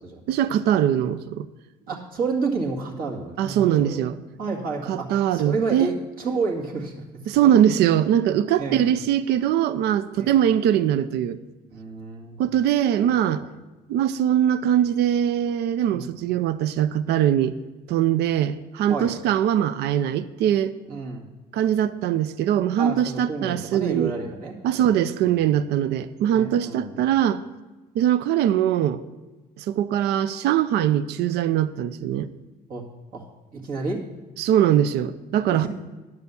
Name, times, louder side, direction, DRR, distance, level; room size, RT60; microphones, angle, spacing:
voice 1, 0.3-1.5 3.4-4.2 4.9-5.9 7.3-11.4 12.4-13.4 13.9-17.5 17.9-20.7 21.5-24.1 24.6-27.4 28.0-29.0 29.6-32.3 34.4-35.7, right 10 dB, 75° right, 15 dB, 0.5 m, -22 dB
voice 2, 1.9-7.0 7.4-7.5 8.6-8.9 10.2-10.3 11.7-12.4 13.4-13.5 15.9-16.1 18.9-19.1 20.9-21.3 22.8-25.0 25.2-25.5 26.3-27.0 32.7-32.8 33.1-33.2 33.5-34.0 35.5-35.7, right 4 dB, 60° right, -1 dB, 2.0 m, -30 dB
9.6 x 6.7 x 6.9 m, 1.1 s
cardioid pair, 110°, 17 cm